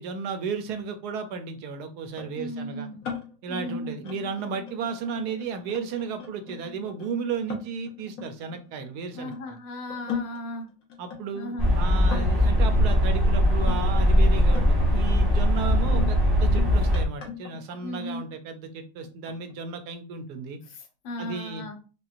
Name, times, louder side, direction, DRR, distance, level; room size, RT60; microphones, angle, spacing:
voice 1, 0.0-2.9 3.4-9.3 11.0-20.6 21.2-21.7, right 5 dB, 70° right, 7 dB, 1.0 m, -34 dB
sound 1, 2.1-9.4 9.9-13.8 14.4-14.9 15.2-18.3 19.0-19.5, left 7 dB, 55° left, 1.1 m, -39 dB
voice 2, 2.3-3.0 3.5-4.0 9.2-10.7 11.3-11.7 17.8-18.2 20.7-21.8, left 1 dB, 80° left, 4 dB, 1.5 m, -36 dB
sound 2, 11.6-17.0, equal, 15° right, 0.8 m, -21 dB
5.4 x 2.2 x 2.5 m, 0.34 s
omnidirectional pair, 2.0 m